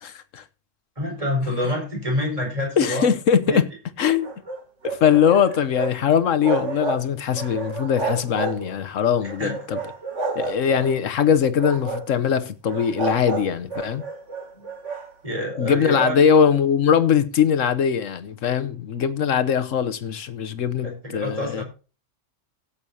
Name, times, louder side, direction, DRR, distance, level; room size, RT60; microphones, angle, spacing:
voice 1, 0.0-0.4 2.8-3.7 4.0-4.3 4.8-9.8 10.3-14.0 15.6-21.6, left 7 dB, 90° left, 1.3 m, -21 dB
voice 2, 1.0-3.1 3.5-3.6 9.2-9.5 14.5-14.6 15.2-16.2 20.8-21.6, left 1 dB, 30° right, 4.7 m, -27 dB
sound 1, 4.0-6.0 6.2-7.0 7.3-8.8 9.2-10.9 11.5-12.1 12.7-15.1, right 3 dB, 70° right, 2.9 m, -30 dB
17.0 x 8.5 x 2.8 m
omnidirectional pair, 1.3 m